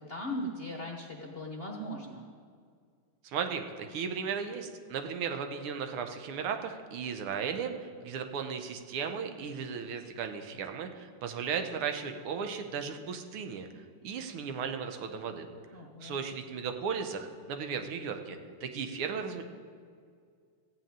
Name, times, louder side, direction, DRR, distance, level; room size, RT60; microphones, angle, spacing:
voice 1, 0.1-2.3 15.7-16.2, equal, 45° left, 0 dB, 0.7 m, -38 dB
voice 2, 3.2-13.7 14.0-15.5 16.0-19.4, right 6 dB, 90° right, 6 dB, 1.8 m, -36 dB
14.5 x 5.9 x 8.8 m, 2.1 s
omnidirectional pair, 2.3 m